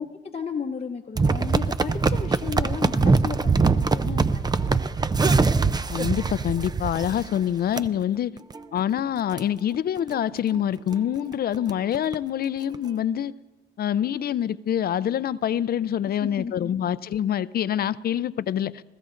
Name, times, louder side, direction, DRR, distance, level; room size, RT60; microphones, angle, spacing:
voice 1, 0.0-4.8 8.3-8.4 16.1-16.7, left 6 dB, 30° left, 0 dB, 0.9 m, -34 dB
sound 1, 1.2-7.4 7.8-7.9 8.4-8.6 9.0-9.1 9.3-9.4 10.0-10.2 10.6-10.7 10.9-11.0 11.3-12.2 12.7-12.8, right 4 dB, 20° right, 0.5 m, -23 dB
voice 2, 5.9-8.3 8.7-13.3 13.8-18.8, left 10 dB, 50° left, 17 dB, 0.4 m, -26 dB
27.5 x 15.0 x 2.5 m, 1.1 s
cardioid pair, 90°, 20 cm